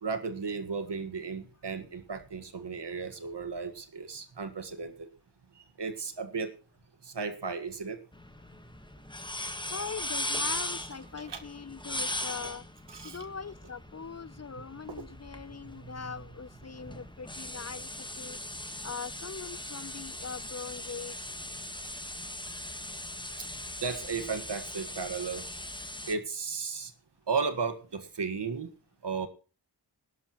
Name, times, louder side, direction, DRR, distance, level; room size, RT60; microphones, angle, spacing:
voice 1, 0.0-5.1 5.6-6.5 7.0-8.0 11.2-11.4 12.9-13.3 14.9-15.0 15.8-16.0 16.9-17.0 23.8-25.4 26.0-26.9 27.3-28.7 29.0-29.3, right 5 dB, 75° right, 9 dB, 1.7 m, -35 dB
sound 1, 8.1-26.1, left 1 dB, 10° left, 1.4 m, -39 dB
voice 2, 9.7-12.6 13.0-18.4 18.8-21.2, left 5 dB, 40° left, 19 dB, 0.6 m, -41 dB
19.0 x 11.0 x 3.0 m, 0.36 s
cardioid pair, 45°, 42 cm